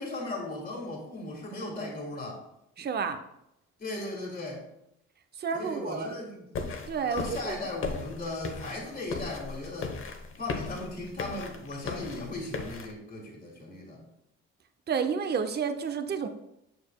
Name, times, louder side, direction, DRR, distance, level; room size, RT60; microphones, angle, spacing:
voice 1, 0.0-2.4 3.8-4.7 5.5-6.5 7.1-10.0 10.4-14.0, left 2 dB, 30° left, -2 dB, 1.6 m, -37 dB
voice 2, 2.8-3.2 5.4-6.1 6.9-7.6 14.9-16.3, right 6 dB, 35° right, 8 dB, 0.6 m, -30 dB
sound 1, 6.5-12.9, left 4 dB, 45° left, 0.8 m, -37 dB
6.6 x 6.5 x 2.3 m, 0.83 s
cardioid pair, 90°, 30 cm